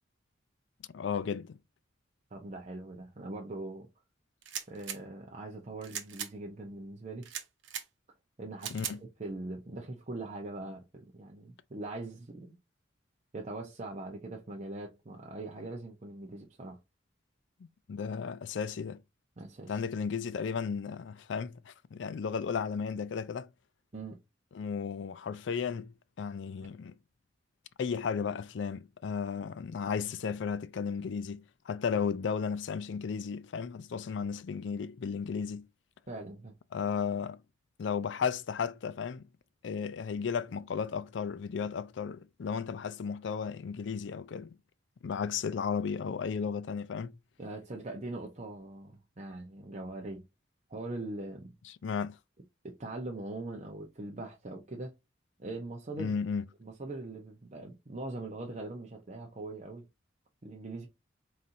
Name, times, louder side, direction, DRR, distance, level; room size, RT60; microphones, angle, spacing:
voice 1, 0.9-1.6 8.7-9.0 17.6-19.0 19.7-23.5 24.5-26.9 27.8-35.7 36.7-37.4 37.8-39.3 39.6-44.6 45.0-47.1 51.7-52.2 56.0-56.4, left 6 dB, 70° left, 0.4 m, -34 dB
voice 2, 2.3-3.9 4.7-7.3 8.4-8.9 9.2-12.6 13.3-16.8 19.4-19.8 23.9-24.2 26.6-26.7 36.1-36.5 47.4-50.2 50.7-51.5 52.6-54.9 55.4-56.1 56.6-59.9 60.4-60.9, right 2 dB, 40° right, 0.7 m, -41 dB
sound 1, 4.4-5.0 5.8-6.3 7.2-7.9 8.6-9.0, right 9 dB, 85° right, 0.8 m, -39 dB
4.2 x 3.9 x 2.6 m
head